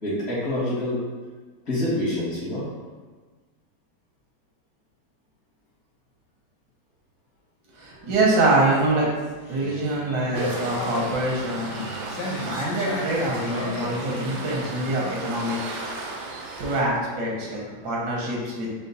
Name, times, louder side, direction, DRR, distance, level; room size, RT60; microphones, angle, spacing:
voice 1, 0.0-1.0 1.7-2.7, left 1 dB, 60° left, -9 dB, 2.1 m, -26 dB
voice 2, 7.8-9.1 9.5-11.9 12.5-15.6 16.3-18.7, right 2 dB, 85° right, -3 dB, 1.5 m, -25 dB
sound 1, 8.6-15.2, left 2 dB, 90° left, 1.4 m, -35 dB
Waves surf, 10.3-16.8, right 3 dB, 70° right, 0.7 m, -35 dB
5.0 x 2.0 x 4.0 m, 1.4 s
omnidirectional pair, 1.8 m